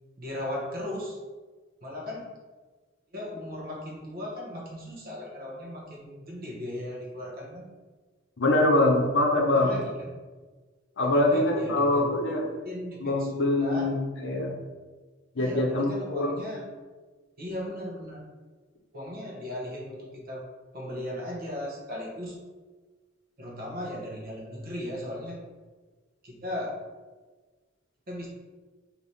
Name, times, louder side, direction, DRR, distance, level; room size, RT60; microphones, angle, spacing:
voice 1, 0.2-1.2 1.8-2.3 3.1-7.7 9.5-10.1 11.0-12.0 12.6-13.9 15.4-16.7 17.4-18.3 18.9-22.4 23.4-25.4 26.2-26.8 28.1-28.3, left 1 dB, 50° right, -2 dB, 1.0 m, -37 dB
voice 2, 8.4-9.7 11.0-12.4 13.0-14.0 14.2-14.6 15.4-16.4, left 2 dB, 65° left, 1 dB, 0.7 m, -24 dB
3.3 x 2.9 x 4.1 m, 1.3 s
head